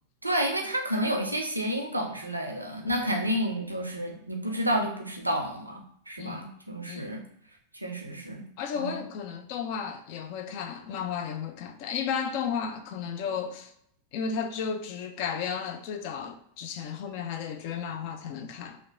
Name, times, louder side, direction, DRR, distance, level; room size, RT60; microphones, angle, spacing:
voice 1, 0.2-7.2 7.7-8.4 8.8-9.0, equal, 85° right, 0.4 m, -30 dB
voice 2, 8.6-13.7 14.1-18.8, left 7 dB, 45° left, 0.3 m, -33 dB
2.9 x 2.1 x 2.5 m
figure-of-eight pair, 90°, 0 cm